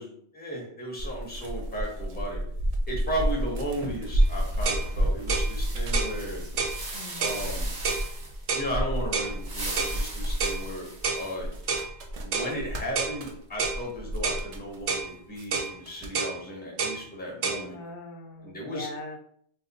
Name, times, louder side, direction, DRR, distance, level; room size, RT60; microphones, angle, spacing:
voice 1, 0.0-2.4 2.9-6.4 7.2-7.7 8.5-10.9 11.1-11.5 12.2-17.8 18.4-18.9, equal, 10° left, -2 dB, 0.8 m, -35 dB
sound 1, 1.0-15.0 15.4-16.1, equal, 60° right, 0.4 m, -31 dB
sound 2, 4.2-8.4 9.3-11.6, right 2 dB, 45° right, 0.9 m, -40 dB
sound 3, 4.2-4.3 4.7-4.9 5.3-5.5 5.9-6.1 6.6-6.8 7.2-7.4 7.8-8.1 8.5-8.7 9.1-9.3 9.8-10.0 10.4-10.6 11.0-11.2 11.7-11.9 12.3-12.5 13.0-13.2 13.6-13.8 14.2-14.4 14.9-15.1 15.5-15.7 16.1-16.4 16.8-17.0 17.4-17.6, right 5 dB, 80° right, 0.9 m, -28 dB
voice 2, 6.9-7.8 17.6-19.2, left 2 dB, 90° left, 4 dB, 0.9 m, -41 dB
2.5 x 2.3 x 3.9 m, 0.64 s
omnidirectional pair, 1.2 m